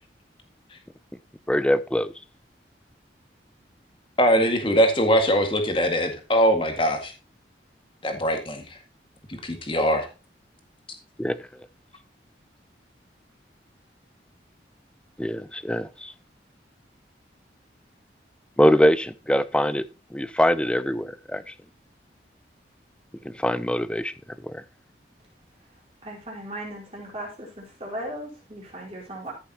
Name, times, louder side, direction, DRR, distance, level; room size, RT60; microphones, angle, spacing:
voice 1, 1.5-2.1 11.2-11.4 15.2-16.1 18.6-19.8 20.1-21.5 23.2-24.1 24.4-24.6, equal, 5° left, 15 dB, 0.4 m, -23 dB
voice 2, 4.2-7.1 8.0-8.8 9.3-10.1, equal, 30° left, 5 dB, 2.0 m, -22 dB
voice 3, 26.0-29.3, right 1 dB, 35° right, -3 dB, 4.5 m, -37 dB
14.0 x 7.1 x 2.9 m, 0.30 s
head